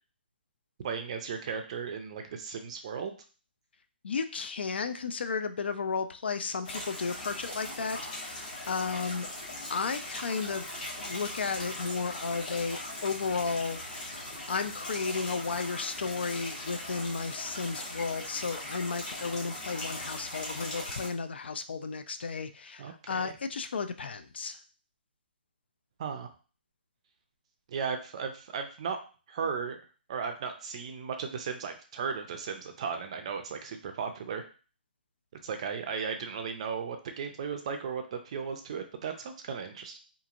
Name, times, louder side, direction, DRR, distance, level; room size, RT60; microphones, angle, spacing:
voice 1, 0.8-3.2 22.8-23.3 26.0-26.3 27.7-29.0 29.3-29.8 30.1-34.5 35.4-40.0, right 6 dB, 35° right, 6 dB, 0.4 m, -36 dB
voice 2, 4.0-9.3 9.7-10.7 11.0-14.2 14.5-24.6, left 5 dB, 75° left, 9 dB, 0.4 m, -33 dB
sound 1, 6.6-21.1, left 1 dB, 50° left, 1.2 m, -40 dB
2.9 x 2.5 x 2.4 m, 0.36 s
hypercardioid pair, 165°, 6 cm